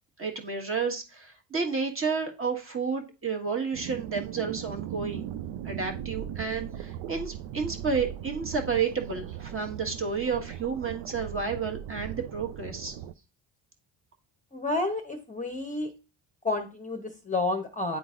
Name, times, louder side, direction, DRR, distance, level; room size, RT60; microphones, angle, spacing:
voice 1, 0.2-5.3 5.6-12.9, right 5 dB, 30° right, 3 dB, 1.4 m, -31 dB
sound 1, 3.7-13.1, right 11 dB, 80° right, 0.5 m, -38 dB
voice 2, 14.5-15.9 16.4-18.0, left 2 dB, 15° left, 4 dB, 0.8 m, -30 dB
9.8 x 3.9 x 2.5 m, 0.30 s
cardioid pair, 100°, 46 cm